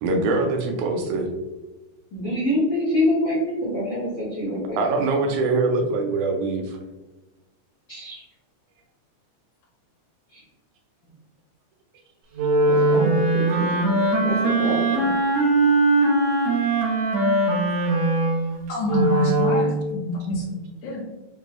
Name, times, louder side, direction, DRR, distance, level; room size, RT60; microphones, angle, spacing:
voice 1, 0.0-1.3 4.8-6.8, right 3 dB, 90° right, 2 dB, 2.0 m, -23 dB
voice 2, 2.1-5.0 7.9-8.2 10.3-10.4 12.6-15.1, left 1 dB, 65° left, -8 dB, 0.9 m, -26 dB
Wind instrument woodwind instrument, 12.4-19.7, right 2 dB, 70° right, 1.7 m, -21 dB
voice 3, 18.7-20.6 20.8-21.0, equal, 80° left, -6 dB, 2.3 m, -25 dB
6.0 x 2.2 x 2.9 m, 1.1 s
omnidirectional pair, 3.3 m